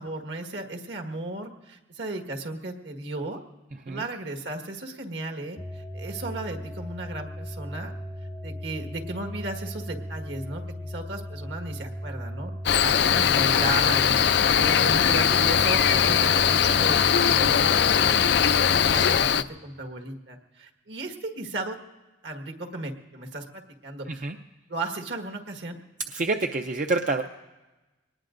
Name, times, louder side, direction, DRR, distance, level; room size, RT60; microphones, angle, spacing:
voice 1, 0.0-3.4 3.9-7.9 8.4-18.2 18.6-21.8 22.2-24.3 24.7-25.8, right 2 dB, 70° right, 4 dB, 1.6 m, -35 dB
sound 1, 5.6-19.2, equal, 5° left, 0.4 m, -36 dB
Cricket, 12.7-19.4, left 8 dB, 65° left, 0.4 m, -21 dB
voice 2, 26.1-27.2, right 3 dB, 45° right, 5 dB, 0.5 m, -27 dB
24.0 x 19.5 x 2.6 m, 1.1 s
head